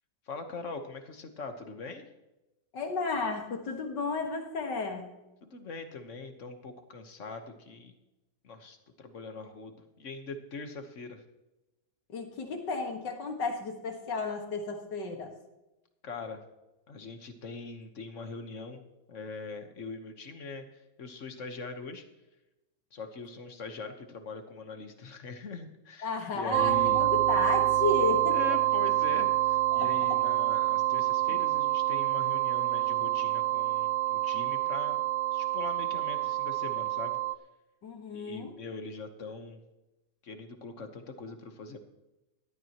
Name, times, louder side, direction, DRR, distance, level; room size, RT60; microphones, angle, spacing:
voice 1, 0.3-2.1 5.4-7.9 8.4-11.2 16.0-16.4 16.9-22.0 22.9-27.1 28.3-35.0 35.3-37.2 38.1-39.6 40.2-41.8, left 3 dB, 45° left, 7 dB, 1.5 m, -42 dB
voice 2, 2.7-5.1 12.1-15.3 26.0-28.6 29.7-30.2 31.3-31.4 37.8-38.5, left 3 dB, 80° left, 3 dB, 2.4 m, -33 dB
sound 1, 26.5-37.4, right 14 dB, 70° right, 0.7 m, -27 dB
17.5 x 12.5 x 3.0 m, 0.98 s
omnidirectional pair, 1.9 m